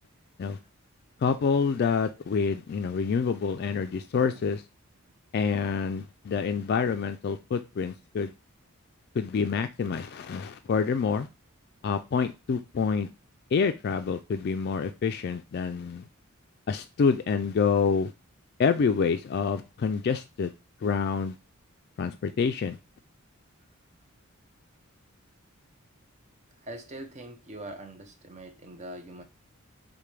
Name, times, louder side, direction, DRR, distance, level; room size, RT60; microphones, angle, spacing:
voice 1, 1.2-4.6 5.3-8.3 9.1-11.3 11.8-13.1 13.5-16.0 16.7-18.1 18.6-20.5 20.8-21.4 22.0-22.8, left 5 dB, 50° left, 0.3 m, -27 dB
voice 2, 26.6-29.2, right 1 dB, 30° right, 0.6 m, -42 dB
6.6 x 2.2 x 3.2 m
head